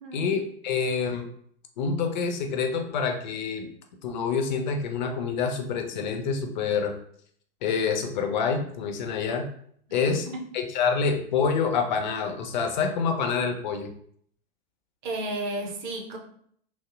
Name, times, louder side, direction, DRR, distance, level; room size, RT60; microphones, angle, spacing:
voice 1, 0.1-1.3 1.8-3.7 4.0-7.0 7.6-9.5 9.9-10.3 10.5-13.9, left 5 dB, 50° left, 5 dB, 0.4 m, -27 dB
voice 2, 10.0-10.4 15.0-16.2, right 2 dB, 50° right, 2 dB, 0.6 m, -33 dB
2.5 x 2.1 x 2.3 m, 0.63 s
figure-of-eight pair, 95°, 31 cm